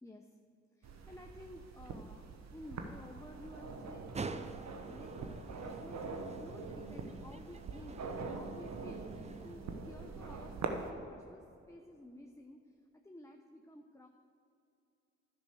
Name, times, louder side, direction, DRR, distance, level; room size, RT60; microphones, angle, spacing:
voice 1, 0.0-0.4 0.7-2.3 2.5-12.8 13.0-14.1, left 1 dB, 10° left, 3 dB, 0.8 m, -53 dB
sound 1, 0.8-10.9, right 4 dB, 65° right, 1.1 m, -44 dB
sound 2, 4.1-9.6, right 4 dB, 25° right, 0.6 m, -48 dB
11.0 x 6.0 x 6.5 m, 2.6 s
supercardioid pair, 45°, 29 cm